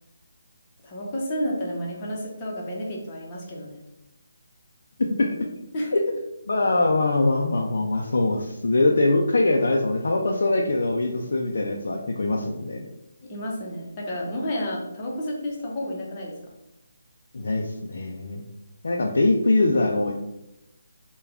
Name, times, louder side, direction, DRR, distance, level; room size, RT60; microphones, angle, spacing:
voice 1, 0.8-3.8 5.7-5.9 13.2-16.4, equal, 25° left, -3 dB, 0.8 m, -31 dB
voice 2, 6.5-12.8 17.3-18.4 18.8-20.1, left 2 dB, 70° left, 1 dB, 0.4 m, -22 dB
3.4 x 2.3 x 3.5 m, 0.89 s
hypercardioid pair, 165°, 0 cm